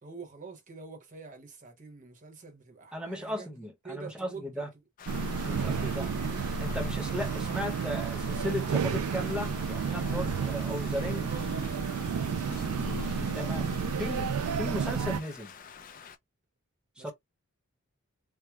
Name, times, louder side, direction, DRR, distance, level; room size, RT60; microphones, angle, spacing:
voice 1, 0.0-3.5 3.8-4.6 11.1-13.5 17.0-17.1, right 4 dB, 35° right, 1.0 m, -47 dB
voice 2, 2.9-4.7 5.4-6.1 6.6-11.3 13.3-15.5 17.0-17.1, left 1 dB, 5° right, 0.9 m, -36 dB
Rain, 5.0-16.2, left 7 dB, 40° left, 0.4 m, -47 dB
sound 1, 5.1-15.2, right 6 dB, 80° right, 0.3 m, -31 dB
Motorcycle, 8.7-14.1, left 2 dB, 65° left, 1.2 m, -45 dB
4.5 x 2.2 x 2.4 m
head